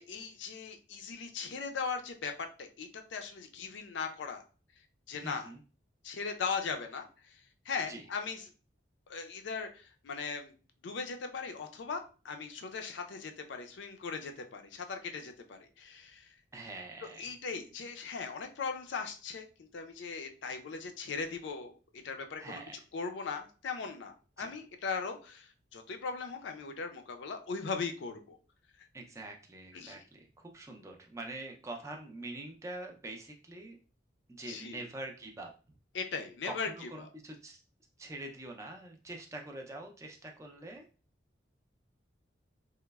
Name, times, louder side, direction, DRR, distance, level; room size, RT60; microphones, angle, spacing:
voice 1, 0.0-4.4 5.1-5.5 6.0-8.5 9.1-10.5 10.8-16.3 17.2-22.6 22.9-28.4 28.8-28.9 29.7-30.0 34.5-34.8 35.9-37.1, left 5 dB, 75° left, 6 dB, 0.4 m, -39 dB
voice 2, 5.2-5.6 7.9-8.1 16.5-17.3 22.4-22.8 24.4-24.5 28.9-33.8 34.3-35.5 36.4-37.6 38.0-40.9, right 2 dB, 15° right, 1 dB, 0.4 m, -45 dB
3.0 x 2.0 x 2.2 m, 0.36 s
head